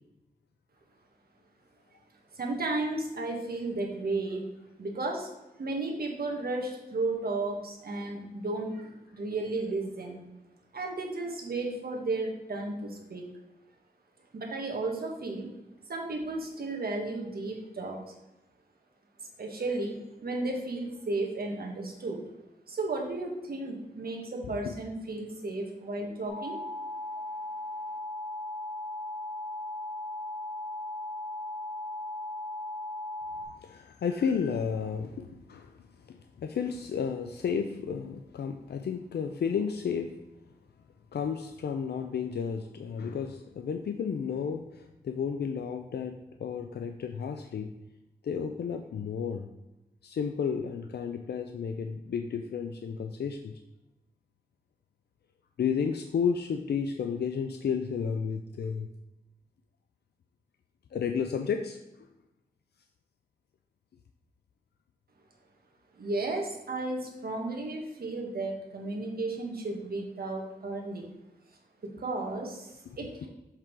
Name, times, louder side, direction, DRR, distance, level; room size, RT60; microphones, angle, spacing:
voice 1, 2.3-4.4 4.8-5.3 5.6-10.2 10.7-13.2 14.3-15.5 15.9-18.0 19.4-22.2 22.7-26.6 65.9-71.0 71.8-73.3, right 2 dB, 70° right, 0 dB, 1.4 m, -34 dB
sound 1, 26.3-33.4, left 1 dB, 55° left, 2.0 m, -37 dB
voice 2, 33.6-40.2 41.1-47.7 48.2-49.5 50.0-53.6 55.6-58.9 60.9-61.8 73.2-73.3, left 6 dB, 90° left, 6 dB, 0.4 m, -32 dB
7.3 x 3.8 x 4.6 m, 0.95 s
wide cardioid pair, 115°, 16 cm